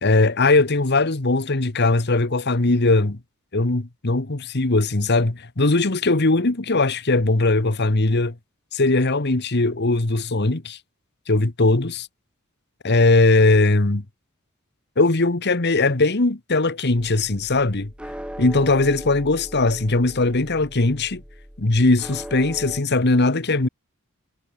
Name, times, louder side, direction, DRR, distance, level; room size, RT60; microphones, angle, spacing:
voice 1, 0.0-3.2 3.5-8.3 8.7-10.8 11.3-12.1 12.8-14.0 15.0-17.9 18.4-21.2 21.6-23.7, left 2 dB, 50° left, 1.4 m, -19 dB
sound 1, 16.9-22.8, equal, 5° right, 7.4 m, -39 dB
head